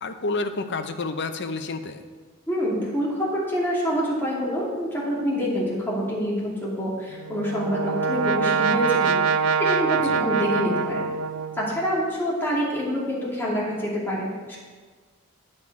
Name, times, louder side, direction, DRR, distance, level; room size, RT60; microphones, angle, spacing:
voice 1, 0.0-2.0 10.0-10.2, left 3 dB, 55° left, 8 dB, 0.7 m, -29 dB
voice 2, 2.5-11.1 11.6-14.6, equal, 10° left, -6 dB, 2.5 m, -26 dB
Brass instrument, 7.1-11.9, right 5 dB, 75° right, 0.4 m, -24 dB
9.8 x 7.1 x 4.8 m, 1.5 s
head